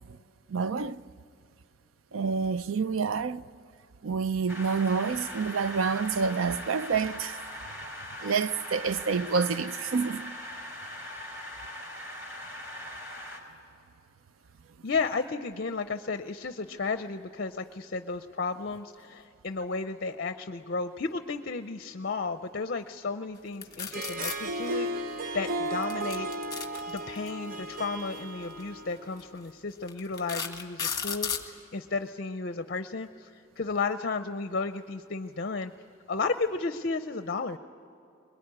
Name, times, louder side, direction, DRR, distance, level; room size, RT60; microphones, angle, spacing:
voice 1, 0.5-1.0 2.1-3.5 4.0-7.4 8.2-10.3, right 5 dB, 80° right, 0.5 m, -28 dB
sound 1, 4.5-13.4, left 1 dB, 15° right, 4.1 m, -41 dB
voice 2, 14.8-26.3 26.9-35.7 36.1-37.6, left 4 dB, 50° left, 0.6 m, -33 dB
sound 2, 23.6-24.4 25.8-27.3 28.4-28.6 29.2-29.3 29.9-31.5, left 6 dB, 20° left, 1.8 m, -33 dB
Harp, 23.8-29.2, right 1 dB, 45° right, 0.8 m, -35 dB
22.0 x 22.0 x 9.7 m
head